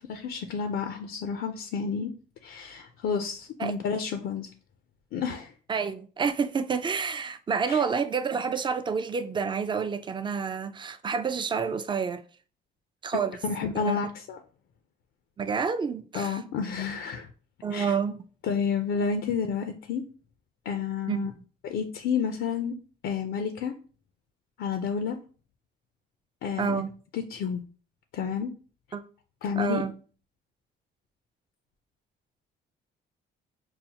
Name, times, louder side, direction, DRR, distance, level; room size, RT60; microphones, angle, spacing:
voice 1, 0.0-2.1 2.4-4.5 5.1-5.5 7.7-7.8 13.4-14.4 16.1-17.3 17.7-18.0 18.4-20.0 20.7-21.3 21.6-22.8 23.0-23.8 24.6-25.2 26.4-26.8 27.1-27.6 28.1-28.5 29.4-29.8, left 6 dB, 80° left, 0.5 m, -30 dB
voice 2, 5.7-12.2 13.0-13.4 13.7-14.0 15.4-16.4 17.6-18.2 21.1-21.3 26.6-26.9 28.9-29.0 29.6-29.9, right 6 dB, 25° right, 0.4 m, -29 dB
5.5 x 2.0 x 2.8 m
cardioid pair, 90°, 20 cm